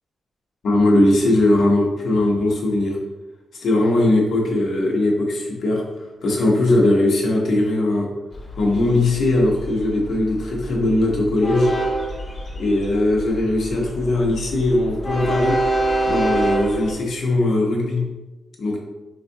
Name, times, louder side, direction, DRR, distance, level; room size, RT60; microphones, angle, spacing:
voice 1, 0.6-3.0 3.6-5.8 6.2-8.1 8.6-11.7 12.6-15.6 16.1-18.0 18.6-18.8, left 2 dB, 75° left, -1 dB, 0.8 m, -19 dB
Train, 8.3-16.9, right 2 dB, 35° left, 0.7 m, -26 dB
4.5 x 2.4 x 2.6 m, 1.2 s
cardioid pair, 100°, 0 cm